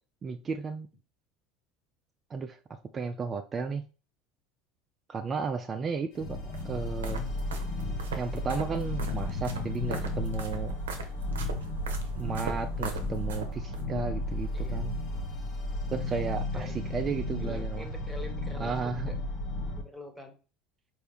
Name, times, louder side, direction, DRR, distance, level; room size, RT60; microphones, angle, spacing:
voice 1, 0.2-0.9 2.3-2.6 2.9-3.9 5.1-6.4 6.6-7.2 8.1-10.8 12.2-15.0 15.9-17.9 18.6-19.1, right 5 dB, 30° right, 6 dB, 0.4 m, -34 dB
sound 1, 6.1-19.8, left 2 dB, 55° left, 1.0 m, -34 dB
sound 2, 6.5-13.8, right 3 dB, 80° right, 0.7 m, -39 dB
voice 2, 17.4-19.2 19.8-20.3, left 1 dB, 5° left, 5 dB, 1.1 m, -45 dB
4.4 x 2.6 x 3.4 m, 0.34 s
hypercardioid pair, 75°, 0 cm